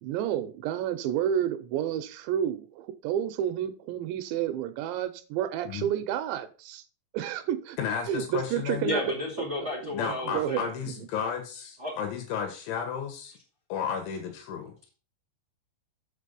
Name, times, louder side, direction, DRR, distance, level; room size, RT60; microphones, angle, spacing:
voice 1, 0.0-6.8 7.1-7.8 8.1-9.1 9.6-9.9 10.2-10.7 11.0-11.1, right 10 dB, 85° right, 10 dB, 3.0 m, -30 dB
voice 2, 7.8-8.9 9.9-13.3 13.7-14.8, left 7 dB, 85° left, 4 dB, 3.7 m, -33 dB
voice 3, 8.8-10.7 11.8-11.9, left 2 dB, 40° right, -3 dB, 0.9 m, -32 dB
7.4 x 6.8 x 5.1 m, 0.36 s
omnidirectional pair, 5.2 m